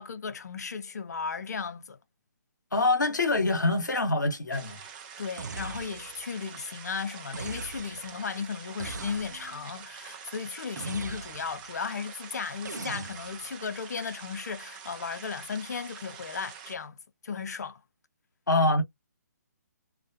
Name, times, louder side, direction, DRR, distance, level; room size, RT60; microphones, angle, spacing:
voice 1, 0.0-2.0 5.2-17.0 17.2-17.8, left 5 dB, 65° left, 0.6 m, -35 dB
voice 2, 2.7-4.8 18.5-18.8, left 2 dB, 85° left, 0.9 m, -25 dB
sound 1, 4.5-16.7, right 7 dB, 30° right, 0.7 m, -46 dB
sound 2, 5.4-6.3 7.3-8.2 8.8-9.7 10.8-11.7 12.6-13.6, right 4 dB, 70° right, 0.5 m, -40 dB
2.4 x 2.2 x 2.6 m
figure-of-eight pair, 140°, 10 cm